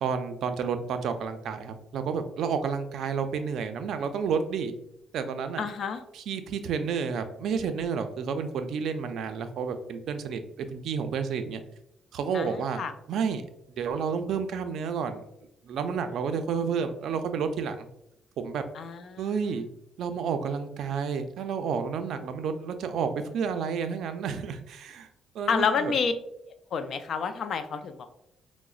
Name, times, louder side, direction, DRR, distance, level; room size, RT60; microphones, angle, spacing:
voice 1, 0.0-4.7 5.1-5.6 6.1-11.6 12.1-13.4 13.7-15.2 15.6-17.9 18.4-18.6 19.2-19.6 20.0-25.1 25.3-25.9, right 6 dB, 75° right, 8 dB, 0.3 m, -30 dB
voice 2, 5.6-6.0 12.3-12.9 18.8-19.3 25.5-26.1 26.7-28.1, left 6 dB, 60° left, 9 dB, 0.3 m, -29 dB
4.7 x 2.0 x 2.3 m, 0.81 s
cardioid pair, 90°, 0 cm